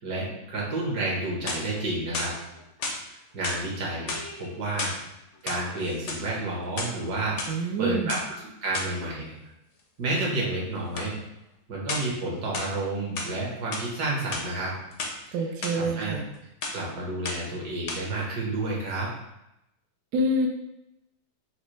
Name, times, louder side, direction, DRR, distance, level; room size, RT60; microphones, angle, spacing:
voice 1, 0.0-2.3 3.1-4.1 4.4-4.9 5.4-8.2 8.6-9.3 10.0-11.2 11.7-14.7 15.7-16.1 16.7-19.1, right 2 dB, 60° right, -4 dB, 1.8 m, -30 dB
sound 1, 1.2-1.8 2.1-3.0 3.4-3.7 4.0-5.0 5.4-6.3 6.6-7.5 8.1-8.2 8.7-9.0 11.0-11.1 11.9-12.2 12.5-13.3 13.7-13.9 14.2-15.1 15.6-15.7 16.1-16.4 16.6-16.9 17.3-17.6 17.9-18.0, left 3 dB, 70° left, 0.6 m, -33 dB
voice 2, 7.5-8.1 15.3-16.2 20.1-20.5, right 1 dB, 75° right, 2 dB, 0.8 m, -26 dB
6.4 x 2.3 x 3.1 m, 0.87 s
omnidirectional pair, 2.1 m